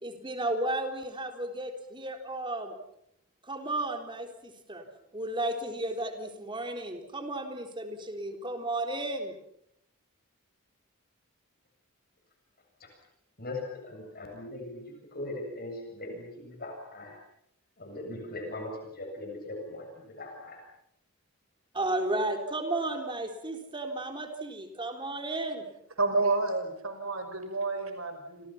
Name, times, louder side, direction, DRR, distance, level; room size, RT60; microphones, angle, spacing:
voice 1, 0.0-2.7 3.4-4.8 5.1-9.4 21.7-25.8, right 2 dB, 25° right, 4 dB, 4.0 m, -33 dB
voice 2, 13.4-17.2 17.8-20.6, left 2 dB, 45° left, 2 dB, 7.4 m, -40 dB
voice 3, 26.0-28.5, right 3 dB, 75° right, 7 dB, 5.6 m, -29 dB
30.0 x 27.5 x 5.9 m, 0.77 s
head